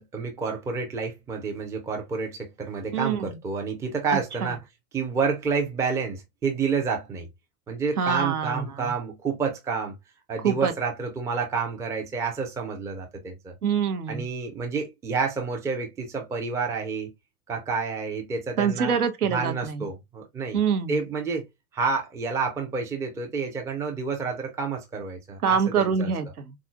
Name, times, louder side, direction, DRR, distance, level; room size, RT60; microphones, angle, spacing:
voice 1, 0.0-4.6 4.9-7.3 7.7-10.0 10.3-13.5 14.1-17.1 17.5-19.0 19.3-20.6 20.9-21.4 21.7-26.1, right 5 dB, 5° right, 0.4 m, -29 dB
voice 2, 2.9-3.4 4.4-4.5 8.0-8.9 10.4-10.7 13.6-14.3 18.6-19.9 20.5-21.0 25.4-26.5, right 7 dB, 75° right, 0.8 m, -25 dB
3.8 x 2.4 x 2.3 m
figure-of-eight pair, 85°, 45 cm